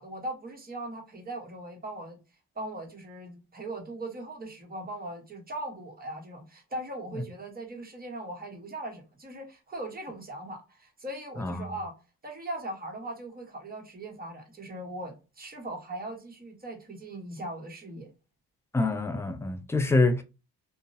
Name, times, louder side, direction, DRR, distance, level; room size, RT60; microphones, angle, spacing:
voice 1, 0.0-2.2 2.5-11.9 12.2-18.1, right 1 dB, 25° right, 1.1 m, -39 dB
voice 2, 18.7-20.2, left 2 dB, 10° left, 0.3 m, -25 dB
2.7 x 2.0 x 2.6 m
cardioid pair, 85°, 38 cm